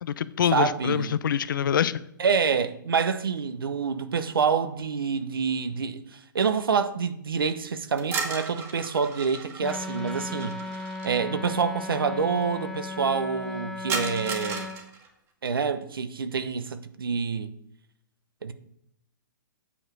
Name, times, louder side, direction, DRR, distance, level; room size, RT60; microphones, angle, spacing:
voice 1, 0.0-2.0, left 9 dB, 65° left, 0.6 m, -25 dB
voice 2, 0.5-1.2 2.2-10.6 11.0-14.7 15.4-17.5 18.4-18.5, right 5 dB, 85° right, 0.9 m, -27 dB
sound 1, 8.0-11.1 13.9-15.1, right 4 dB, 20° right, 1.6 m, -35 dB
Wind instrument woodwind instrument, 9.6-14.8, left 3 dB, 5° left, 0.7 m, -36 dB
8.5 x 5.0 x 6.1 m
hypercardioid pair, 135°, 12 cm